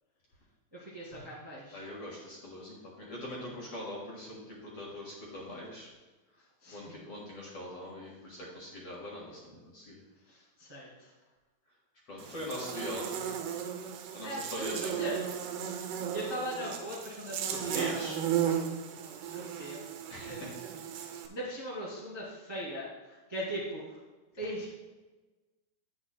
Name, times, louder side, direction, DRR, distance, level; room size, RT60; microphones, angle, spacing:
voice 1, 0.7-1.8 3.4-3.6 6.6-7.0 10.3-11.1 12.1-12.3 12.7-13.1 14.2-15.2 16.1-18.0 19.3-19.8 20.3-20.5 21.3-24.0 24.3-24.7, equal, 25° right, -6 dB, 0.5 m, -40 dB
voice 2, 1.7-5.9 6.7-9.9 12.1-13.2 14.1-15.0 17.5-18.2 20.1-20.5 20.9-21.1, left 1 dB, 50° left, -4 dB, 2.0 m, -42 dB
Buzz, 12.2-21.3, right 9 dB, 80° right, 2.8 m, -35 dB
11.0 x 8.8 x 2.2 m, 1.2 s
omnidirectional pair, 4.7 m